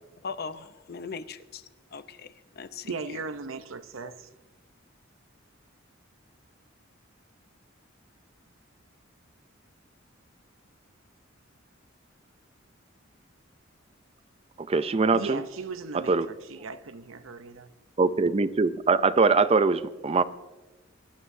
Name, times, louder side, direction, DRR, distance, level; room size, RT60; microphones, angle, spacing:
voice 1, 0.2-1.6 1.9-2.3 2.6-2.9, left 5 dB, 55° left, 0.7 m, -39 dB
voice 2, 2.8-4.3 15.1-17.7, right 4 dB, 85° right, 0.7 m, -37 dB
voice 3, 14.7-15.4 16.1-16.3 18.0-20.2, right 4 dB, 30° right, 0.5 m, -22 dB
20.0 x 11.5 x 2.7 m
head